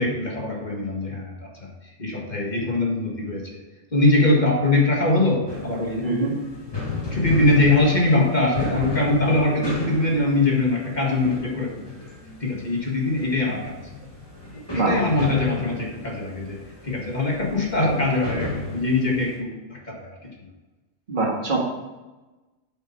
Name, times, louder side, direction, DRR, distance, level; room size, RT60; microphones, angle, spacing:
voice 1, 0.0-3.6 3.9-6.3 7.1-12.0 12.4-13.8 14.5-20.3, left 2 dB, 35° left, -1 dB, 1.9 m, -22 dB
sound 1, 5.5-19.4, left 3 dB, 20° left, 2.1 m, -34 dB
voice 2, 6.0-6.3 14.7-14.9 21.1-21.6, right 3 dB, 40° right, -3 dB, 2.0 m, -23 dB
8.3 x 7.9 x 4.4 m, 1.1 s
omnidirectional pair, 1.4 m